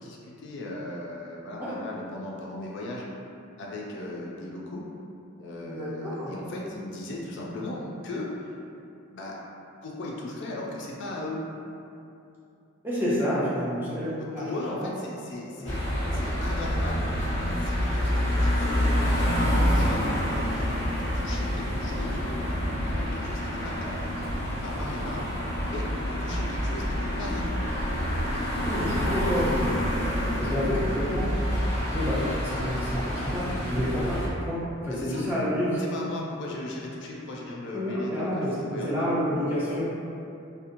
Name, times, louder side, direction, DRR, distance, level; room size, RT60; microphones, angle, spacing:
voice 1, 0.0-3.0 3.6-4.8 5.4-8.5 9.1-9.4 9.8-11.4 14.2-15.8 16.1-17.1 17.6-20.0 20.4-24.0 24.6-25.4 25.7-27.7 34.9-35.2 35.8-39.1, left 2 dB, 55° left, -3 dB, 0.3 m, -37 dB
voice 2, 5.6-6.3 12.8-14.4 14.8-14.9 15.6-15.7 16.2-16.3 28.7-31.4 31.9-35.8 37.7-39.9, equal, 10° right, -10 dB, 0.5 m, -29 dB
sound 1, 15.6-34.3, equal, 30° left, 0.7 m, -27 dB
2.8 x 2.1 x 2.5 m, 2.7 s
head